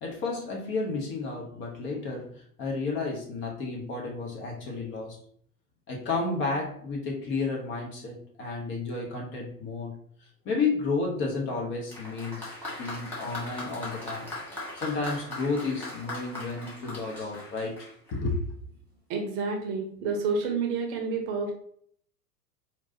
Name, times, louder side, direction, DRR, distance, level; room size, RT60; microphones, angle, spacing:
voice 1, 0.0-5.2 5.9-10.0 10.4-12.4 12.8-14.3 14.7-18.4, left 3 dB, 25° left, -1 dB, 0.7 m, -32 dB
Applause, 11.9-18.4 19.3-19.4, left 2 dB, 5° left, 1.5 m, -39 dB
voice 2, 19.1-21.5, right 4 dB, 35° right, 3 dB, 0.8 m, -29 dB
4.5 x 2.7 x 2.6 m, 0.62 s
figure-of-eight pair, 90°, 47 cm